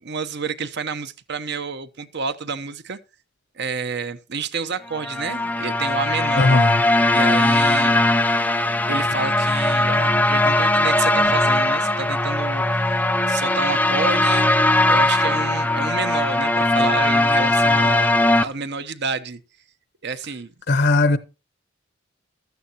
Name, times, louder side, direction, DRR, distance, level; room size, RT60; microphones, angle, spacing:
voice 1, 0.0-3.0 3.6-6.5 7.1-8.0 8.9-12.6 13.3-14.5 14.9-19.4 20.0-20.5, right 5 dB, 60° right, 0.9 m, -29 dB
sound 1, 4.9-18.4, left 1 dB, 10° left, 0.5 m, -19 dB
voice 2, 6.4-6.8 20.7-21.2, left 2 dB, 55° left, 0.7 m, -17 dB
15.0 x 12.5 x 2.9 m
head